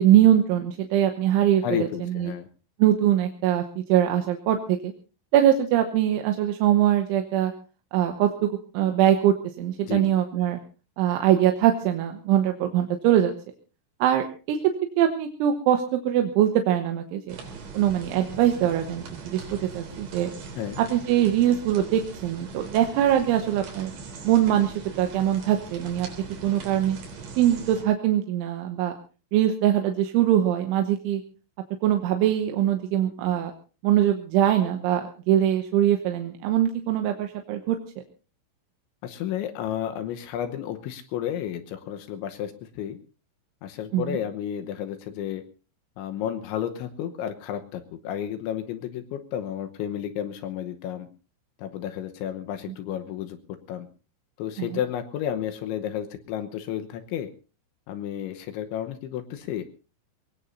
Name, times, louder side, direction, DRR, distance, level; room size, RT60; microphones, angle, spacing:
voice 1, 0.0-2.3 2.8-4.9 5.3-7.5 7.9-8.3 8.7-10.6 11.0-13.3 14.0-14.6 15.0-17.4 17.7-20.3 20.8-23.9 24.2-26.1 26.4-27.0 27.4-28.9 29.3-31.2 31.8-33.5 33.8-35.0 35.3-37.8 43.9-44.2 54.6-54.7, right 11 dB, 80° right, 5 dB, 3.4 m, -22 dB
voice 2, 1.6-2.5 9.9-10.1 20.6-20.8 39.0-43.0 43.6-45.4 46.0-51.1 51.6-53.4 53.7-53.9 54.4-57.3 57.9-59.6, left 10 dB, 75° left, 7 dB, 3.1 m, -32 dB
sound 1, 17.3-27.8, right 4 dB, 60° right, 5.6 m, -41 dB
23.0 x 20.0 x 2.7 m, 0.35 s
omnidirectional pair, 5.8 m